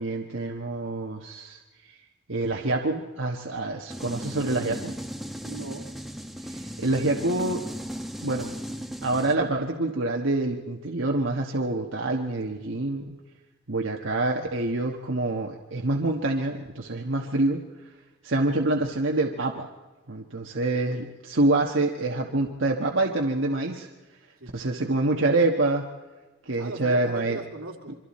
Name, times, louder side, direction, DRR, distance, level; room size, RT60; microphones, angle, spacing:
voice 1, 0.0-1.6 1.9-2.0 2.3-5.0 6.5-7.6 8.2-8.5 9.0-13.1 13.7-17.6 18.2-19.7 20.1-23.9 24.5-25.9 26.5-27.4, right 2 dB, 65° right, 1 dB, 1.4 m, -26 dB
sound 1, 3.9-9.3, equal, ahead, 1.1 m, -36 dB
voice 2, 5.4-5.9 20.9-21.1 24.4-24.5 26.5-28.0, right 2 dB, 90° right, 1 dB, 2.8 m, -38 dB
27.0 x 24.5 x 4.3 m, 1.2 s
head